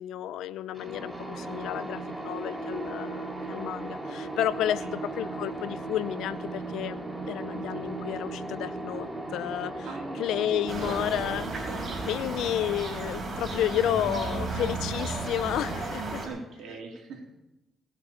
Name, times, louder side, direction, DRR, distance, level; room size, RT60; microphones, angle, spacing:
voice 1, 0.0-9.9 10.2-11.5 12.1-16.2, left 11 dB, 85° left, 16 dB, 0.6 m, -31 dB
sound 1, 0.7-14.4, right 2 dB, 10° right, 2.4 m, -37 dB
voice 2, 9.8-11.9 16.2-17.4, right 4 dB, 70° right, 1 dB, 3.5 m, -42 dB
sound 2, 10.7-16.3, right 2 dB, 40° right, 4.3 m, -33 dB
19.0 x 7.1 x 7.0 m, 0.98 s
cardioid pair, 90°, 0 cm